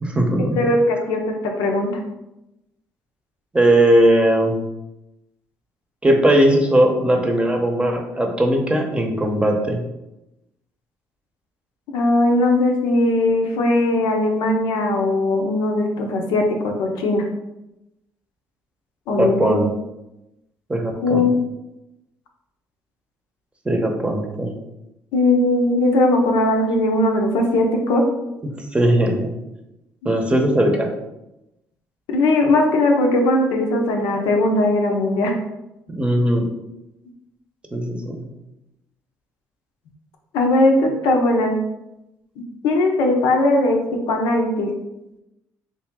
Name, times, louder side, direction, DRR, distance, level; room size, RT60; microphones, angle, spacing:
voice 1, 0.0-0.6 3.5-4.6 6.0-9.8 19.2-19.7 20.7-21.3 23.6-24.6 28.7-29.3 30.0-30.9 35.9-36.5 37.7-38.2, right 1 dB, 15° right, 3 dB, 0.8 m, -18 dB
voice 2, 0.6-1.9 11.9-17.2 19.1-19.6 21.0-21.5 25.1-28.0 32.1-35.3 40.3-41.5 42.6-44.7, left 2 dB, 85° left, 2 dB, 0.6 m, -19 dB
3.3 x 2.7 x 3.6 m, 0.91 s
supercardioid pair, 80°, 7 cm